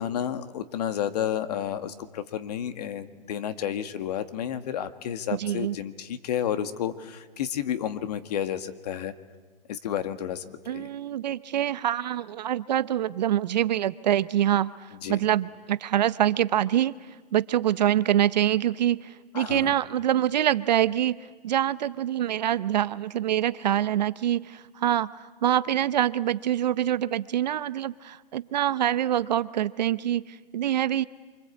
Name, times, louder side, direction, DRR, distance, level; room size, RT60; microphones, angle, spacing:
voice 1, 0.0-9.1 9.7-10.9 15.0-15.2 19.3-19.7, left 9 dB, 45° left, 10 dB, 1.8 m, -31 dB
voice 2, 5.3-5.8 10.7-14.7 15.1-16.9 17.3-25.1 25.4-31.0, right 11 dB, 45° right, 15 dB, 0.8 m, -25 dB
28.5 x 25.0 x 8.4 m, 1.4 s
hypercardioid pair, 150°, 29 cm